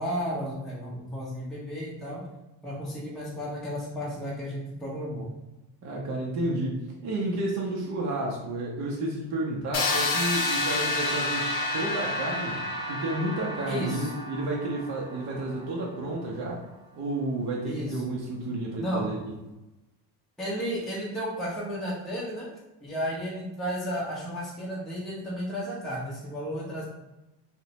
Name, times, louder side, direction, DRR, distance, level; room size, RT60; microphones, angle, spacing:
voice 1, 0.0-2.2 2.6-5.3 13.7-14.1 17.6-18.0 18.8-19.1 20.4-22.5 22.8-26.9, equal, ahead, -7 dB, 0.6 m, -33 dB
voice 2, 5.8-12.6 12.9-16.6 17.0-19.3, right 2 dB, 40° right, -2 dB, 0.6 m, -31 dB
sound 1, 9.7-15.5, left 2 dB, 50° left, 0.6 m, -30 dB
2.5 x 2.1 x 2.8 m, 1.0 s
cardioid pair, 115°, 41 cm